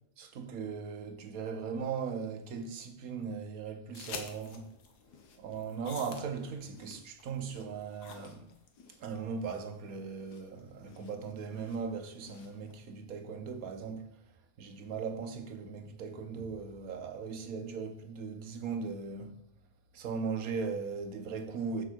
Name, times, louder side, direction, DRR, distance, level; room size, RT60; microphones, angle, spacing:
voice 1, 0.2-4.7 5.4-8.5 9.0-14.1 14.6-19.4 19.9-21.8, right 5 dB, 65° right, 1.3 m, -38 dB
sound 1, 3.9-12.7, left 5 dB, 90° left, 1.6 m, -50 dB
7.2 x 5.0 x 6.2 m
omnidirectional pair, 1.7 m